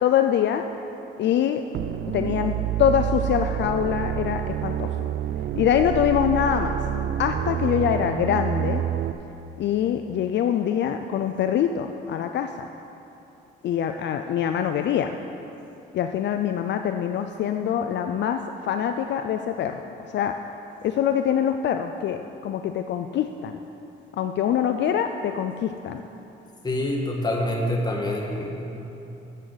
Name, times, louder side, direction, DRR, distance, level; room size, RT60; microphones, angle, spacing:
voice 1, 0.0-0.6 1.2-1.6 2.1-2.5 2.8-4.9 5.6-6.8 7.2-8.8 9.6-12.7 13.6-15.2 15.9-19.8 20.1-20.3 20.8-23.6 24.2-26.0, left 9 dB, 65° left, 7 dB, 0.4 m, -24 dB
sound 1, 1.7-9.1, right 10 dB, 55° right, 0.4 m, -28 dB
voice 2, 26.6-28.7, left 1 dB, 20° left, -1 dB, 1.7 m, -26 dB
12.5 x 7.7 x 4.0 m, 2.9 s
cardioid pair, 90°, 20 cm